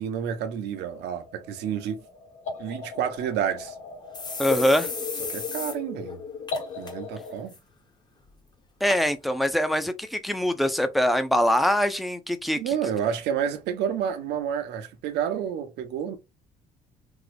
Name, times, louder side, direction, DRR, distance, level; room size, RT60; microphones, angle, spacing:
voice 1, 0.0-2.0 2.6-3.8 5.3-6.2 6.8-7.6 12.6-16.2, right 8 dB, 80° right, 0.8 m, -29 dB
sound 1, 0.7-7.4, left 5 dB, 45° left, 1.0 m, -37 dB
sound 2, 3.2-3.3 3.6-3.7 4.1-5.8 6.1-6.2 6.5-6.9 7.3-7.6 8.3-8.4 8.9-9.0 9.7-9.8, left 4 dB, 25° left, 0.8 m, -35 dB
voice 2, 4.4-4.9 8.8-12.7, equal, ahead, 0.4 m, -23 dB
3.6 x 2.0 x 3.3 m
cardioid pair, 110°, 17 cm